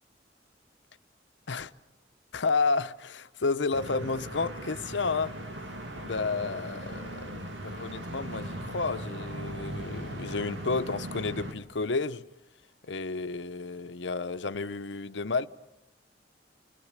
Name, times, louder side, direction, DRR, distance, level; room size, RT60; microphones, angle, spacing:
voice 1, 2.3-5.3 6.0-12.2 12.9-15.5, left 4 dB, 75° left, 0.8 m, -31 dB
sound 1, 3.7-11.5, right 1 dB, 80° right, 2.6 m, -39 dB
29.5 x 22.0 x 7.4 m
head